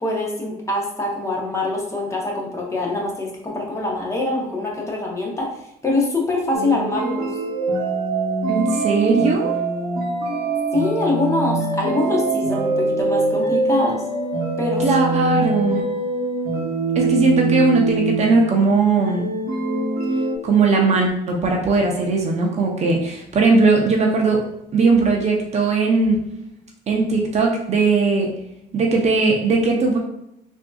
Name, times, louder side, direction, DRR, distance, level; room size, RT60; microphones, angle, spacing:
voice 1, 0.0-5.5 5.8-7.3 10.7-14.0 14.6-14.8, left 2 dB, 15° left, -2 dB, 0.8 m, -24 dB
sound 1, 6.5-18.5 19.0-20.4, right 3 dB, 85° right, 0.9 m, -23 dB
voice 2, 8.5-9.5 14.8-15.8 17.0-19.3 20.4-24.4 24.7-26.2 26.9-28.3 28.7-30.0, right 3 dB, 40° right, 0 dB, 0.6 m, -18 dB
3.4 x 2.6 x 2.3 m, 0.82 s
cardioid pair, 110°, 17 cm